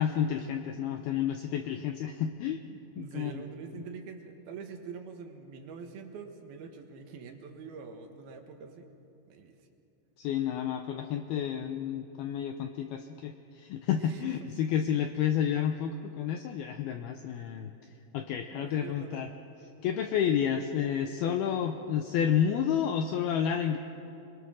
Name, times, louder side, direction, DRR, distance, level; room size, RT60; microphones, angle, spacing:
voice 1, 0.0-2.6 3.0-3.3 10.2-17.7 18.1-19.3 19.8-23.8, left 9 dB, 80° left, 6 dB, 2.3 m, -30 dB
voice 2, 3.0-8.9 9.3-9.6 13.9-14.6 18.5-19.2, right 5 dB, 65° right, 4 dB, 3.0 m, -45 dB
26.5 x 22.0 x 6.3 m, 2.8 s
omnidirectional pair, 5.3 m